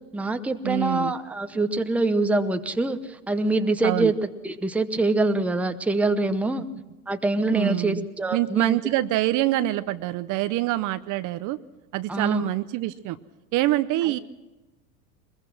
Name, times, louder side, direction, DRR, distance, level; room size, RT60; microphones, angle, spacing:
voice 1, 0.1-4.1 4.4-6.7 7.1-8.8 12.1-12.4, right 2 dB, 5° right, 8 dB, 0.8 m, -24 dB
voice 2, 0.6-1.1 3.8-4.1 7.5-8.1 8.3-11.6 11.9-13.2 13.5-14.2, right 16 dB, 40° right, 13 dB, 0.7 m, -25 dB
22.0 x 21.5 x 6.1 m, 1.1 s
hypercardioid pair, 115°, 47 cm